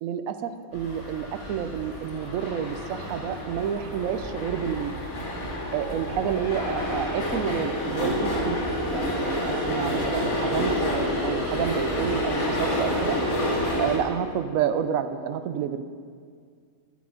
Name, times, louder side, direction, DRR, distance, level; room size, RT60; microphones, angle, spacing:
voice 1, 0.0-4.9 5.7-8.6 8.9-13.2 13.8-15.9, right 8 dB, 75° right, 10 dB, 1.0 m, -29 dB
sound 1, 0.7-14.0, left 1 dB, 80° left, 2.3 m, -29 dB
11.0 x 6.8 x 5.1 m, 2.1 s
omnidirectional pair, 1.5 m